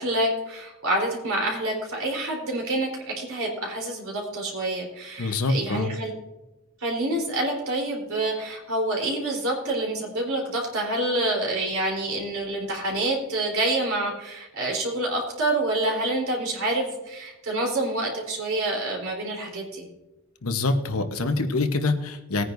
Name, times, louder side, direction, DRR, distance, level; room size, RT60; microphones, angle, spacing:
voice 1, 0.0-6.1 6.8-19.9, right 1 dB, 75° right, 0 dB, 3.8 m, -27 dB
voice 2, 5.2-5.9 20.4-22.5, left 2 dB, 85° left, 6 dB, 1.1 m, -25 dB
19.5 x 9.6 x 2.7 m, 1.0 s
head